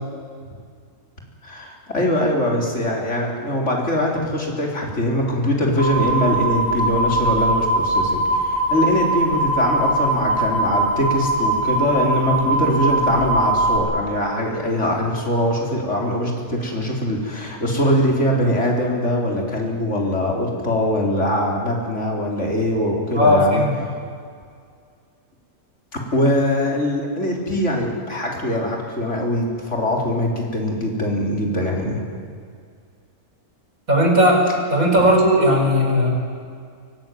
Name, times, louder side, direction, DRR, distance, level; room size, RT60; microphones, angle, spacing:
voice 1, 1.4-23.6 25.9-32.0, left 1 dB, 50° left, 0 dB, 4.3 m, -22 dB
sound 1, 5.8-13.8, right 2 dB, 35° right, 6.3 m, -21 dB
voice 2, 23.1-23.7 33.9-36.1, equal, 65° right, 1 dB, 5.1 m, -16 dB
24.5 x 18.0 x 9.4 m, 2.2 s
omnidirectional pair, 1.6 m